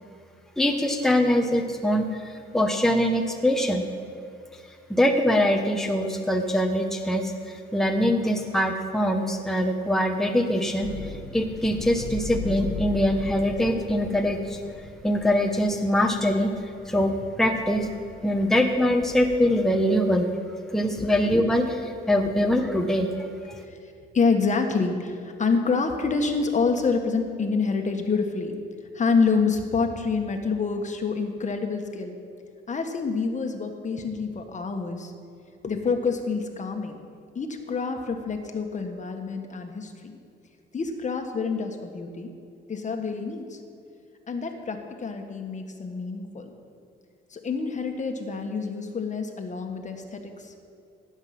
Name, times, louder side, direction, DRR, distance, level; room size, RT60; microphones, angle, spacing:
voice 1, 0.6-3.9 4.9-10.9 11.3-14.6 15.0-16.5 16.9-17.9 18.2-20.3 20.7-23.1, equal, ahead, 3 dB, 1.1 m, -23 dB
sound 1, 10.8-19.4, left 4 dB, 60° left, 1.7 m, -38 dB
voice 2, 23.6-28.6 28.9-32.2 32.7-35.1 35.6-37.0 37.3-40.2 40.7-42.3 42.7-43.6 44.3-46.5 47.3-50.5, left 4 dB, 35° left, 4 dB, 1.6 m, -27 dB
16.5 x 8.1 x 6.0 m, 2.5 s
cardioid pair, 90°, 20 cm